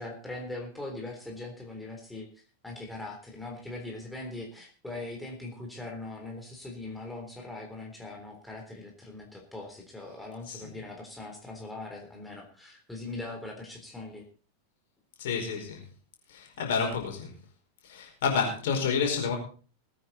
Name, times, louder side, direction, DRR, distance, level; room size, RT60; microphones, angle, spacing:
voice 1, 0.0-2.3 2.6-14.2, left 2 dB, 5° left, 0 dB, 3.6 m, -41 dB
voice 2, 15.2-15.8 16.3-17.3 17.8-19.4, left 6 dB, 55° left, 2 dB, 4.7 m, -29 dB
20.0 x 9.3 x 4.2 m, 0.38 s
figure-of-eight pair, 90°, 0 cm